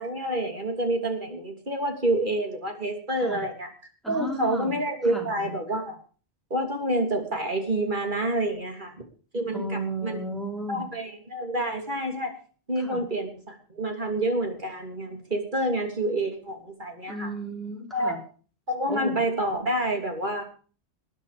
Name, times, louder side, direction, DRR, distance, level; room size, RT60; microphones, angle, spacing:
voice 1, 0.0-3.7 4.1-6.0 6.5-8.9 9.3-9.6 10.0-10.2 10.7-12.3 12.7-17.3 17.9-18.2 18.7-20.4, right 1 dB, 45° right, 4 dB, 3.4 m, -28 dB
voice 2, 4.0-5.3 9.5-10.8 12.8-13.0 17.1-18.2 18.9-19.2, right 1 dB, ahead, 0 dB, 5.1 m, -34 dB
20.5 x 9.7 x 5.2 m, 0.40 s
omnidirectional pair, 1.2 m